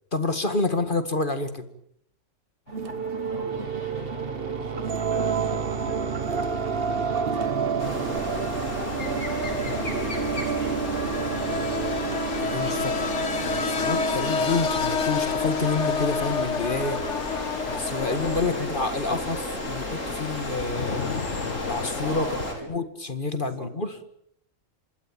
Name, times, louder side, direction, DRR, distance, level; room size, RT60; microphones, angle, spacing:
voice 1, 0.1-1.6 12.3-13.1 13.4-17.0 17.7-19.4 19.6-21.1 21.6-22.3 22.7-24.0, left 3 dB, 40° left, 10 dB, 2.1 m, -28 dB
sound 1, 2.7-22.5, left 5 dB, 65° left, 1.8 m, -32 dB
sound 2, 2.7-15.6, right 6 dB, 50° right, 1.4 m, -30 dB
voice 2, 3.3-8.5 9.6-10.9 18.2-19.5 22.0-22.7 23.3-23.7, right 1 dB, 75° right, 5 dB, 4.7 m, -41 dB
sound 3, 7.8-22.5, left 2 dB, 85° left, 5.3 m, -33 dB
26.5 x 20.5 x 8.9 m, 0.72 s
omnidirectional pair, 1.3 m